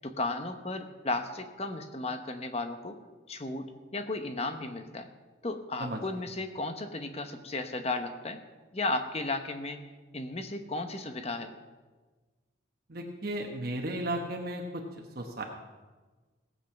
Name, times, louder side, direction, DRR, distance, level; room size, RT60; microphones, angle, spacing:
voice 1, 0.0-3.0 3.3-3.7 3.9-5.1 5.4-8.4 8.7-9.8 10.1-11.5, left 2 dB, 30° left, 7 dB, 1.0 m, -34 dB
voice 2, 12.9-15.4, right 1 dB, 50° right, 1 dB, 1.2 m, -35 dB
17.5 x 7.8 x 5.9 m, 1.3 s
head